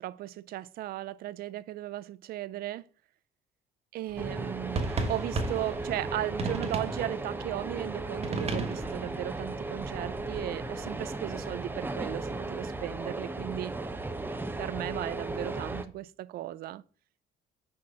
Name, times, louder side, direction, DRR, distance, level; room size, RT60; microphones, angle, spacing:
voice 1, 0.0-2.8 3.9-13.7 14.6-16.8, right 14 dB, 65° right, 0.4 m, -36 dB
sound 1, 4.1-11.1, right 3 dB, 35° right, 1.4 m, -37 dB
sound 2, 4.2-15.8, right 2 dB, 10° right, 0.7 m, -36 dB
6.4 x 4.5 x 5.7 m
cardioid pair, 110°, 17 cm